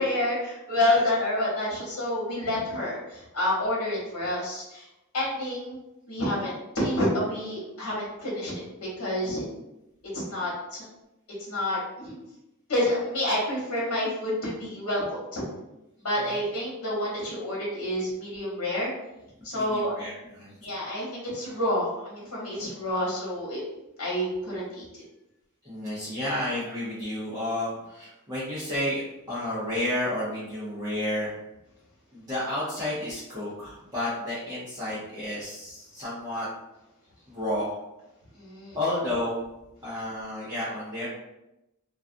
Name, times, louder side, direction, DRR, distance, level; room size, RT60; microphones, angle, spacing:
voice 1, 0.0-4.9 5.1-5.8 6.1-9.5 10.1-10.8 11.4-12.2 12.7-15.4 16.0-18.9 19.4-20.0 20.6-23.6 24.0-25.0 38.3-38.8, left 1 dB, 80° left, -5 dB, 1.0 m, -28 dB
voice 2, 19.5-20.5 25.6-29.0 29.3-31.3 32.1-36.5 37.3-37.7 38.7-39.4 39.8-41.1, left 1 dB, 15° right, -11 dB, 0.6 m, -31 dB
2.3 x 2.3 x 2.5 m, 0.92 s
head